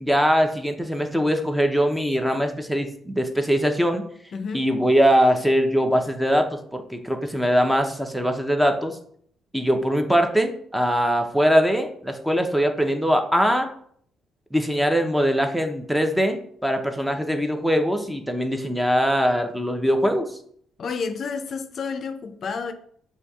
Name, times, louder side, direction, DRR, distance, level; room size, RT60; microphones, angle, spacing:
voice 1, 0.0-4.0 4.5-9.0 9.5-13.7 14.5-20.3, equal, 5° right, 0.6 m, -22 dB
voice 2, 4.3-4.7 20.8-22.7, left 5 dB, 55° left, 0.4 m, -30 dB
6.7 x 2.7 x 2.3 m
cardioid pair, 90°, 0 cm